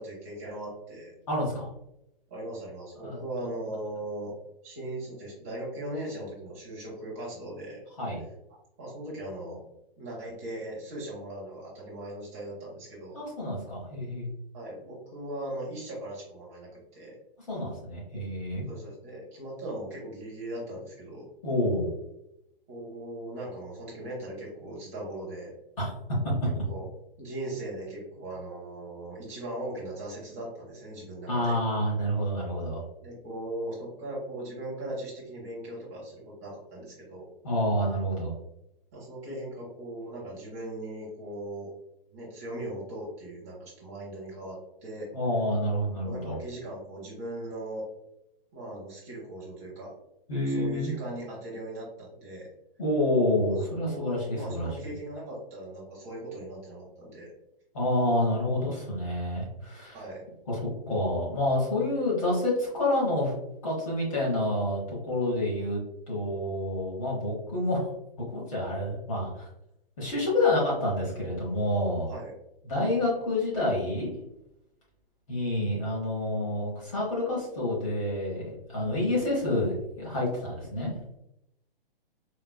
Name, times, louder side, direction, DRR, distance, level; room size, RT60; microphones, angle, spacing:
voice 1, 0.0-1.1 2.3-4.3 4.6-7.8 8.5-9.6 10.0-13.2 14.5-17.2 18.7-21.3 22.7-25.5 26.7-26.9 27.2-31.6 33.0-37.3 38.9-41.7 42.1-45.1 46.0-47.8 48.5-49.9 50.4-52.5 53.5-57.3 59.9-60.2 72.1-72.3, right 1 dB, 15° right, -5 dB, 0.7 m, -39 dB
voice 2, 1.3-1.7 3.0-3.2 8.0-8.2 13.1-14.3 17.5-18.7 21.4-21.9 25.8-25.9 26.2-26.3 31.3-32.8 37.4-38.3 45.1-46.4 50.3-50.9 52.8-54.7 57.7-60.0 60.5-60.6 60.9-63.3 63.6-65.8 66.1-67.9 68.2-69.4 70.0-72.1 72.7-74.1 75.3-80.9, left 1 dB, 35° left, -5 dB, 1.0 m, -28 dB
4.3 x 2.2 x 2.2 m, 0.83 s
hypercardioid pair, 175°, 30 cm